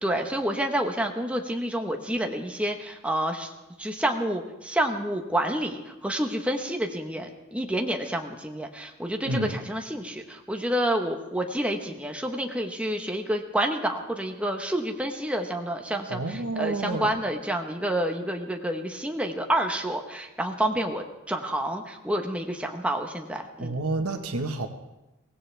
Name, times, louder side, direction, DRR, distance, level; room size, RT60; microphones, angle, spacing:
voice 1, 0.0-3.5 3.8-23.7, right 1 dB, 5° right, 3 dB, 1.1 m, -29 dB
voice 2, 9.3-9.6 16.1-17.1 23.6-24.7, right 2 dB, 90° right, 6 dB, 1.4 m, -29 dB
23.5 x 17.5 x 3.4 m, 1.0 s
head